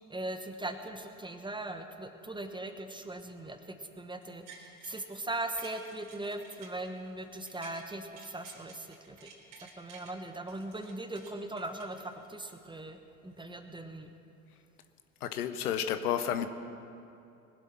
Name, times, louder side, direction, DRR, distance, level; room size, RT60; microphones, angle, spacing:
voice 1, 0.1-9.3 9.6-13.0 13.2-14.1, right 2 dB, 10° right, 7 dB, 1.1 m, -40 dB
sound 1, 4.2-5.1 5.4-7.8 8.1-10.1 10.5-12.5 12.9-13.0, right 5 dB, 60° right, 3.5 m, -53 dB
voice 2, 15.2-16.5, left 9 dB, 80° left, 9 dB, 0.8 m, -31 dB
21.0 x 7.8 x 6.0 m, 2.7 s
hypercardioid pair, 65°, 44 cm